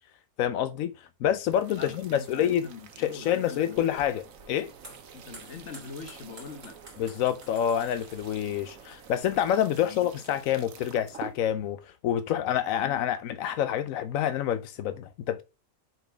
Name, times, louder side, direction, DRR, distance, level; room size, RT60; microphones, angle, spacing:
voice 1, 0.4-2.7 3.0-4.7 7.0-15.4, left 10 dB, 85° left, 1.0 m, -27 dB
sound 1, 1.4-11.4, right 7 dB, 85° right, 1.4 m, -48 dB
voice 2, 1.7-3.9 5.1-6.8 9.7-10.1 12.8-13.1, left 5 dB, 60° left, 1.4 m, -43 dB
sound 2, 3.7-9.5, right 2 dB, 50° right, 2.8 m, -52 dB
6.7 x 4.0 x 5.0 m
omnidirectional pair, 1.4 m